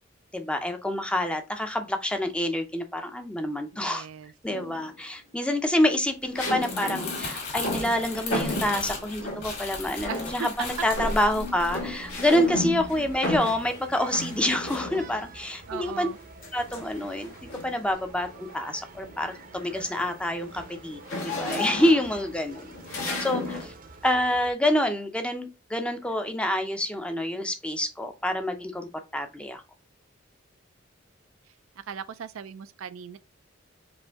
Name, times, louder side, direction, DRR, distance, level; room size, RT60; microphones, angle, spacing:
voice 1, 0.3-4.1 4.4-16.1 16.5-17.3 17.6-22.6 22.9-23.7 24.0-29.6, left 1 dB, 5° left, 0.6 m, -27 dB
voice 2, 3.7-4.3 10.0-10.5 13.0-13.1 15.7-16.2 31.9-33.2, right 7 dB, 85° right, 0.4 m, -38 dB
sound 1, 4.5-5.0 6.3-9.7 10.0-10.6 10.9-15.3 16.4-17.8 18.3-18.6 18.9-23.7, left 1 dB, 80° left, 1.8 m, -34 dB
Crumpling crinkling, 6.3-12.7 13.1-13.4, left 3 dB, 55° left, 2.2 m, -36 dB
sound 2, 10.7-24.5, right 3 dB, 45° right, 0.7 m, -47 dB
5.0 x 2.7 x 3.4 m
head